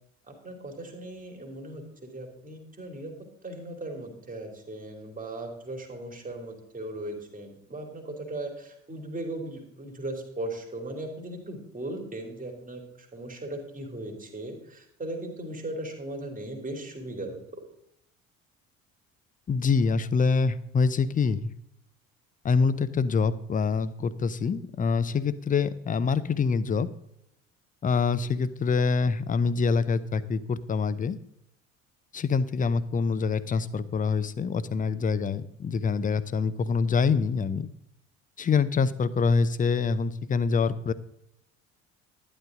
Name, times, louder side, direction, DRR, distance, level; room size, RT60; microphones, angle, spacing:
voice 1, 0.3-3.1 3.4-12.8 13.1-17.4, right 1 dB, 20° right, 3 dB, 2.9 m, -38 dB
voice 2, 19.5-21.5 22.4-26.9 27.8-31.2 32.1-37.7 38.4-40.9, left 5 dB, 20° left, 14 dB, 0.7 m, -25 dB
12.0 x 10.5 x 3.8 m, 0.78 s
figure-of-eight pair, 55°, 39 cm